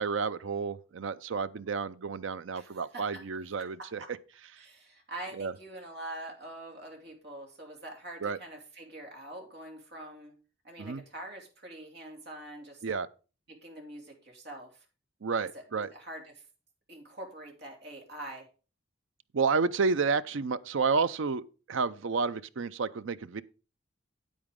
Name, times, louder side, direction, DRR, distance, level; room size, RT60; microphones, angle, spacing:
voice 1, 0.0-4.0 5.4-5.5 8.2-8.4 10.8-11.0 12.8-13.1 15.2-15.9 19.3-23.4, right 5 dB, 80° right, 0.5 m, -30 dB
voice 2, 2.5-3.0 3.6-3.7 4.0-4.1 4.6-10.3 10.6-12.8 13.5-14.8 15.4-16.3 16.9-18.5, right 1 dB, 55° right, 2.8 m, -44 dB
8.9 x 8.8 x 3.7 m
head